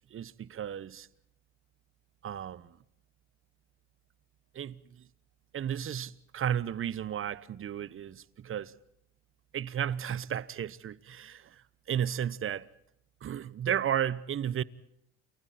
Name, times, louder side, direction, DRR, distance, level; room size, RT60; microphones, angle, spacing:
voice 1, 0.1-1.1 2.2-2.8 4.5-4.8 5.5-8.7 9.5-11.6 11.9-12.7 13.2-14.6, right 9 dB, 40° right, 1.1 m, -33 dB
29.0 x 28.5 x 4.3 m
supercardioid pair, 80°, 33 cm